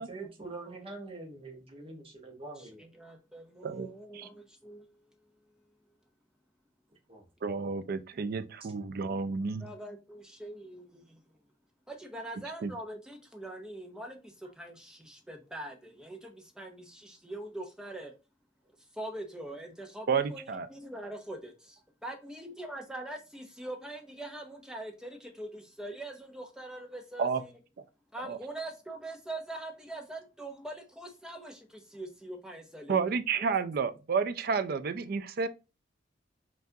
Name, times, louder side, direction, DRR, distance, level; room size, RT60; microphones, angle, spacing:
voice 1, 0.0-2.8 7.1-7.2 8.6-8.7, right 3 dB, 30° right, 0.9 m, -44 dB
voice 2, 2.6-5.3 9.6-11.4 11.9-18.1 18.9-27.5 28.1-33.0 33.4-33.5, right 1 dB, 5° right, 0.7 m, -43 dB
voice 3, 7.4-9.7 12.6-12.7 20.1-20.7 27.2-27.4 28.2-28.4 32.9-35.5, right 5 dB, 50° right, 0.4 m, -30 dB
5.7 x 2.5 x 2.7 m
head